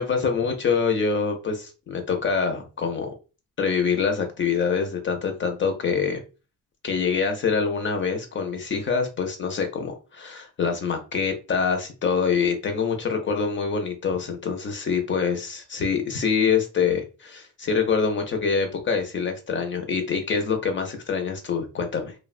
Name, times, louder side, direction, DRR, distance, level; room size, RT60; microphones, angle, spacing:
voice 1, 0.0-3.1 3.6-6.2 6.8-22.1, left 5 dB, 35° left, 0.4 m, -25 dB
3.0 x 2.1 x 2.3 m
wide cardioid pair, 175°, 33 cm